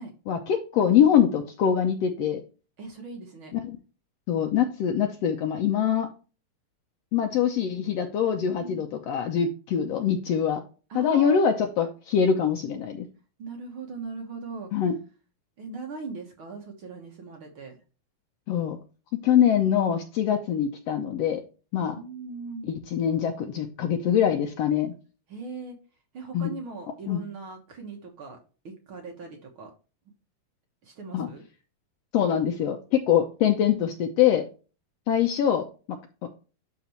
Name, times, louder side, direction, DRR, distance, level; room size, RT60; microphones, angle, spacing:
voice 1, 0.3-2.4 3.5-3.6 4.3-6.1 7.1-10.6 10.9-13.1 14.7-14.9 18.5-18.8 19.2-21.4 21.7-22.0 22.7-24.9 26.3-26.5 27.1-27.2 31.1-31.3 32.1-34.4 35.1-36.0, left 8 dB, 80° left, 4 dB, 1.4 m, -24 dB
voice 2, 2.8-3.5 8.6-8.9 10.9-11.5 13.4-14.8 15.6-17.8 21.9-22.7 25.3-25.8 26.1-28.4 28.6-29.7 30.8-31.4, right 4 dB, 55° right, 2 dB, 1.5 m, -39 dB
12.0 x 4.3 x 3.0 m, 0.34 s
omnidirectional pair, 4.0 m